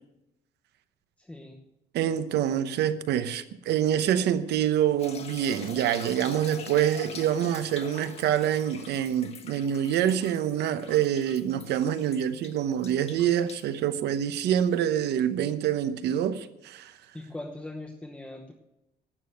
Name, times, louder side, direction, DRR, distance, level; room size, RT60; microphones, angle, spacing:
voice 1, 1.2-1.6 17.1-18.5, left 2 dB, 5° left, 0.9 m, -40 dB
voice 2, 1.9-16.9, right 10 dB, 80° right, 0.9 m, -26 dB
sound 1, 5.0-14.8, left 5 dB, 35° left, 1.3 m, -45 dB
12.0 x 8.6 x 7.8 m
cardioid pair, 160°, 17 cm